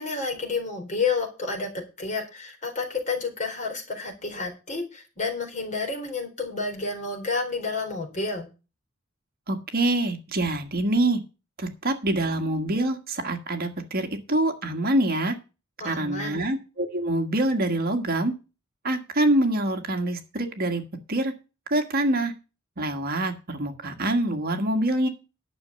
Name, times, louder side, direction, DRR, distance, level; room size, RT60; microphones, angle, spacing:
voice 1, 0.0-8.5 15.8-16.4, left 4 dB, 40° left, 2 dB, 4.1 m, -30 dB
voice 2, 9.5-11.2 11.6-15.3 15.8-18.3 18.8-20.8 21.1-21.3 21.7-22.3 22.8-25.1, right 1 dB, 50° right, 5 dB, 1.7 m, -25 dB
11.0 x 6.4 x 6.9 m, 0.31 s
head